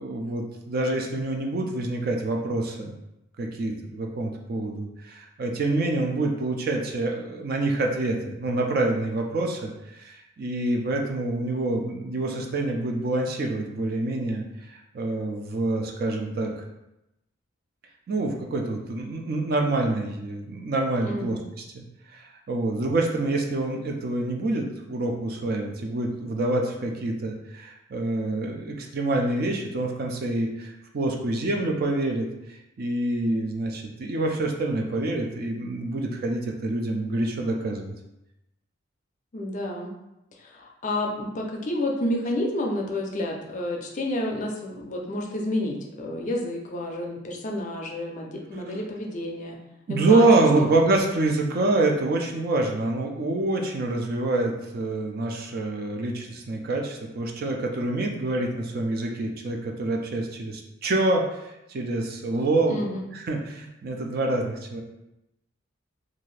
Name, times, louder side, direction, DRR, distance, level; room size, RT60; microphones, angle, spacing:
voice 1, 0.0-2.9 3.4-16.5 18.1-21.4 21.7-21.8 22.1-32.3 32.8-37.9 48.7-48.8 49.9-62.8 63.1-64.8, right 2 dB, 50° right, 1 dB, 0.4 m, -26 dB
voice 2, 21.0-21.4 39.3-39.9 40.4-49.6 49.9-50.7 62.7-63.1, left 1 dB, 40° left, 0 dB, 0.4 m, -30 dB
2.6 x 2.4 x 3.1 m, 0.90 s
head